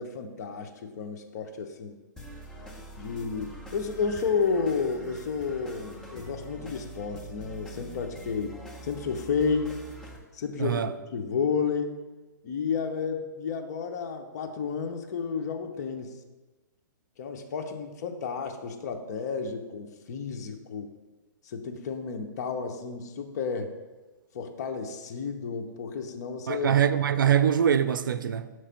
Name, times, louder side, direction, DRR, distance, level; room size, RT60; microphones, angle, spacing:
voice 1, 0.0-2.0 3.0-8.5 8.8-9.7 10.3-10.8 11.1-12.0 12.4-16.2 17.2-20.9 21.5-23.7 24.3-26.7, left 5 dB, 55° left, 0.8 m, -31 dB
sound 1, 2.2-10.2, right 1 dB, 5° left, 0.9 m, -44 dB
voice 2, 10.6-10.9 26.5-28.5, right 8 dB, 85° right, 0.4 m, -23 dB
5.9 x 3.2 x 5.7 m
hypercardioid pair, 140°, 11 cm